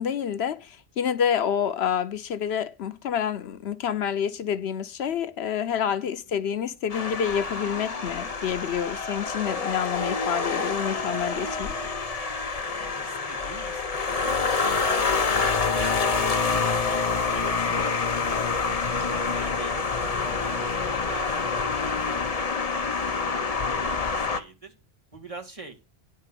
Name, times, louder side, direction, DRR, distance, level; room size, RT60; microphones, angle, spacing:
voice 1, 0.0-11.7, left 8 dB, 80° left, 1.0 m, -28 dB
sound 1, 6.9-24.4, left 4 dB, 40° left, 0.9 m, -27 dB
voice 2, 13.0-23.1 23.9-24.8 25.1-25.8, right 3 dB, 30° right, 1.9 m, -44 dB
9.8 x 4.4 x 7.6 m
omnidirectional pair, 1.1 m